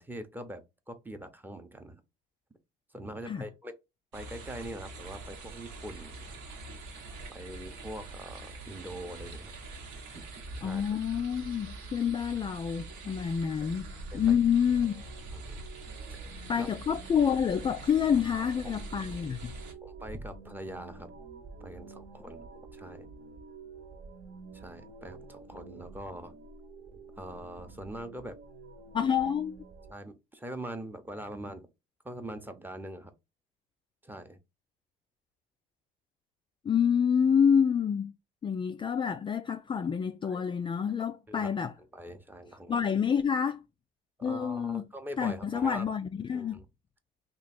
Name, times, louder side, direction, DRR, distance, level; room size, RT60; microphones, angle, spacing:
voice 1, 0.0-2.0 2.9-3.7 4.1-6.3 7.3-9.5 10.1-10.2 10.6-10.8 13.6-13.7 14.1-14.4 15.3-15.6 16.1-16.3 16.6-16.7 18.2-18.8 19.8-21.1 21.6-23.1 24.5-26.4 27.2-28.4 29.9-31.7 32.0-33.1 34.0-34.4 40.2-40.4 40.8-40.9 41.3-41.5 41.9-42.7 44.2-45.9 46.3-46.6, right 1 dB, 10° right, 0.7 m, -43 dB
sound 1, 4.1-19.7, right 3 dB, 80° right, 1.1 m, -44 dB
voice 2, 10.6-13.9 14.1-15.0 16.5-19.5 28.9-29.6 36.6-38.1 38.4-41.7 42.7-43.6 44.2-44.8 45.2-46.6, left 7 dB, 25° left, 0.3 m, -28 dB
sound 2, 11.8-29.9, right 3 dB, 55° right, 1.0 m, -50 dB
3.1 x 2.3 x 4.2 m
supercardioid pair, 80°, 18 cm